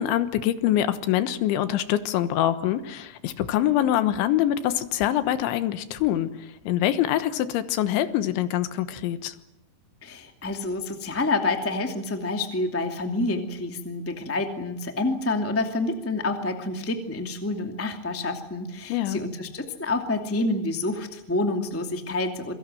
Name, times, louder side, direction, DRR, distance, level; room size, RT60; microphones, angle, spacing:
voice 1, 0.0-6.3 6.7-9.4 18.9-19.2, left 12 dB, 80° left, 11 dB, 3.5 m, -24 dB
voice 2, 10.0-22.5, left 2 dB, 10° left, 4 dB, 0.7 m, -28 dB
27.0 x 23.0 x 7.8 m, 0.84 s
omnidirectional pair, 5.3 m